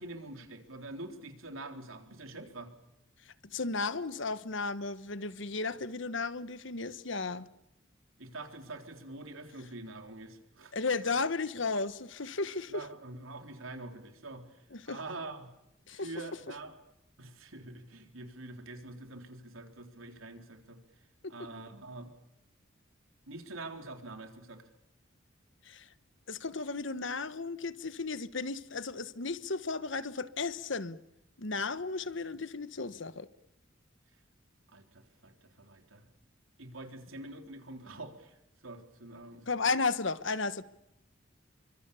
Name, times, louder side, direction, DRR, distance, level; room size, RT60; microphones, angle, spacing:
voice 1, 0.0-2.7 8.2-10.7 12.7-15.5 15.9-16.8 17.2-20.8 21.3-22.1 23.3-24.6 34.7-36.0 36.6-38.4 38.6-39.7, right 2 dB, 85° right, 3.9 m, -45 dB
voice 2, 3.5-7.5 10.7-12.8 14.7-15.0 15.9-16.1 21.2-21.3 25.7-25.8 26.3-31.0 31.4-33.3 39.5-40.6, left 4 dB, 65° left, 1.3 m, -34 dB
30.0 x 24.5 x 7.1 m
head